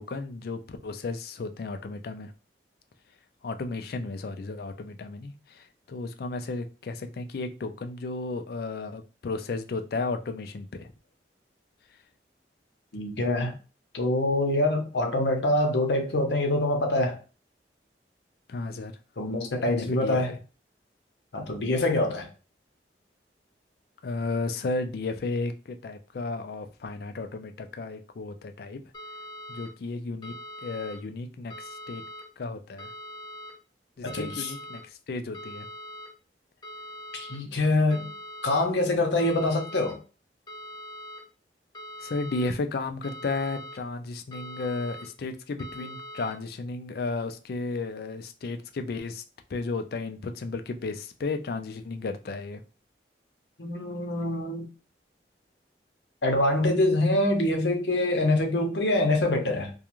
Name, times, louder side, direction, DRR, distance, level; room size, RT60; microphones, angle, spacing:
voice 1, 0.0-2.3 3.4-10.9 18.5-18.9 19.7-20.4 24.0-28.8 29.5-30.3 30.6-32.0 32.4-32.9 34.0-35.7 42.0-49.2 49.5-52.6, left 3 dB, 60° left, 0.4 m, -33 dB
voice 2, 12.9-13.5 13.9-17.2 19.2-20.3 21.3-22.3 34.0-34.5 37.1-38.1 38.4-40.0 53.6-54.7 56.2-59.7, left 1 dB, 85° left, 0.7 m, -25 dB
sound 1, 28.9-29.7 30.2-31.0 31.5-32.2 32.8-33.5 34.1-34.8 35.3-36.1 36.6-37.4 37.9-38.6 39.2-39.9 40.5-41.2 41.7-42.5 43.0-43.8 44.3-45.0 45.6-46.3, equal, 20° left, 0.9 m, -42 dB
2.4 x 2.3 x 3.0 m
head